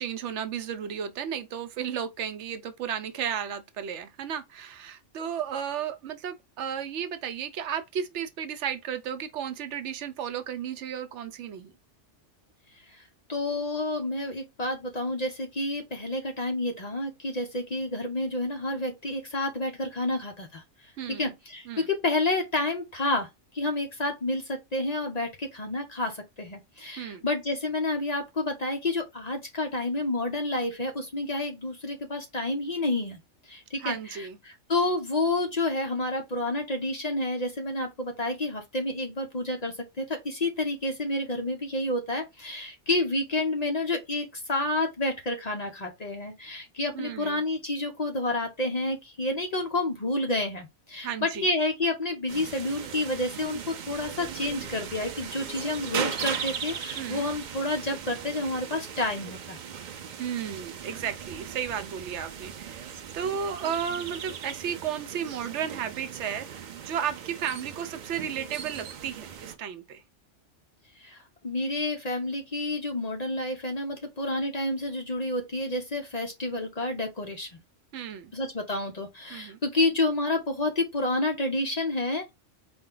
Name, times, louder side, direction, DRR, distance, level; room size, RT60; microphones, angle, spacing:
voice 1, 0.0-11.7 21.0-21.3 21.7-21.9 27.0-27.3 33.8-34.4 46.9-47.4 51.0-51.5 57.0-57.3 60.2-70.0 77.9-78.3 79.3-79.6, right 8 dB, 75° right, 0.9 m, -34 dB
voice 2, 13.3-20.6 21.1-23.3 23.5-33.2 33.5-59.6 71.0-77.6 78.3-82.3, left 2 dB, 40° left, 0.7 m, -29 dB
sound 1, 52.3-69.5, right 7 dB, 55° right, 0.5 m, -38 dB
4.3 x 2.2 x 3.7 m
omnidirectional pair, 1.2 m